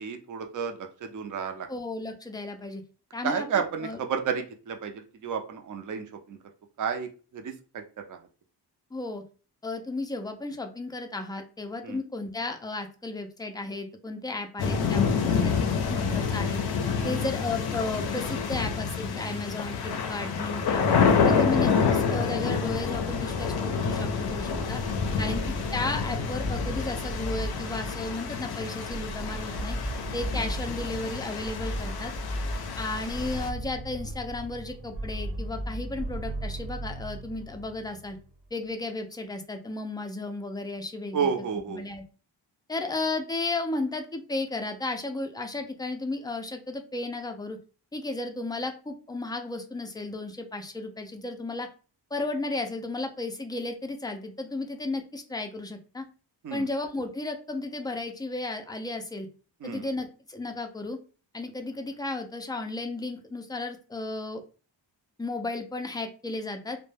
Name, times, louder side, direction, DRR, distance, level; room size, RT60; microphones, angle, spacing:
voice 1, 0.0-1.7 3.2-6.4 6.8-7.8 8.1-8.2 11.8-12.0 17.0-17.2 21.3-21.6 25.2-25.3 30.3-30.5 41.1-41.8 56.4-56.7 59.6-59.9, right 6 dB, 45° right, 5 dB, 0.5 m, -32 dB
voice 2, 1.7-2.8 3.1-4.0 8.9-9.2 9.6-15.6 15.9-16.6 17.0-20.9 21.3-24.8 25.2-29.8 30.1-32.1 32.8-38.2 38.5-41.3 41.8-42.0 42.7-47.6 47.9-51.7 52.1-56.0 56.5-59.3 59.6-61.0 61.3-64.4 65.2-66.8, left 2 dB, 10° left, 5 dB, 0.3 m, -34 dB
sound 1, 14.6-33.5, left 6 dB, 60° left, 0.5 m, -28 dB
Something Evil Approaches A, 22.7-38.3, right 1 dB, 70° right, 1.0 m, -36 dB
2.2 x 2.1 x 3.1 m, 0.36 s
wide cardioid pair, 95°, 44 cm